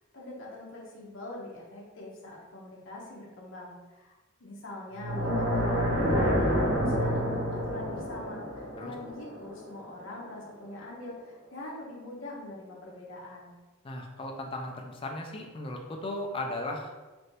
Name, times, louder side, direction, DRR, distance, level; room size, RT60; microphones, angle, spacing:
voice 1, 0.1-13.5, left 2 dB, 60° left, -4 dB, 0.7 m, -43 dB
sound 1, 4.9-10.1, equal, 70° right, 0.7 m, -28 dB
voice 2, 13.8-16.9, left 1 dB, 25° left, 2 dB, 0.3 m, -36 dB
3.3 x 2.6 x 2.7 m, 1.2 s
head